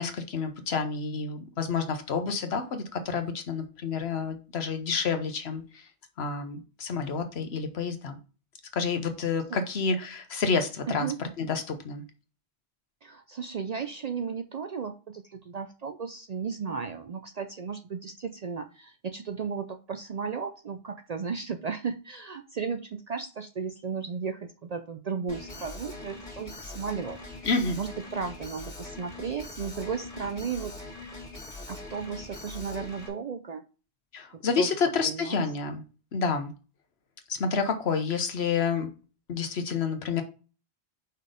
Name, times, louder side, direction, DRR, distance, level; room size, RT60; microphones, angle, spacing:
voice 1, 0.0-5.8 6.2-8.2 8.7-11.1 11.4-12.0 27.4-27.8 34.1-35.8 36.1-36.5 37.3-38.9 39.3-40.2, left 5 dB, 70° left, 7 dB, 1.2 m, -29 dB
voice 2, 10.9-11.2 13.0-27.5 27.8-31.2 31.7-33.6 34.6-34.7 35.0-35.5, right 6 dB, 55° right, 8 dB, 0.5 m, -35 dB
Alarm, 25.3-33.1, left 2 dB, 35° left, 2.4 m, -42 dB
5.4 x 4.1 x 5.0 m, 0.35 s
omnidirectional pair, 1.1 m